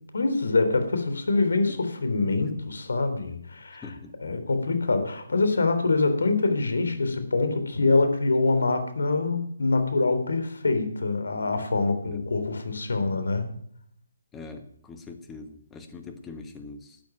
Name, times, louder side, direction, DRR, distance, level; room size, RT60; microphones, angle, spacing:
voice 1, 0.1-3.9 4.2-13.5, left 3 dB, 85° left, 8 dB, 3.6 m, -25 dB
voice 2, 3.8-4.1 12.0-12.2 14.3-17.0, left 3 dB, 10° left, 6 dB, 1.4 m, -42 dB
12.5 x 9.1 x 9.2 m, 0.65 s
hypercardioid pair, 165°, 0 cm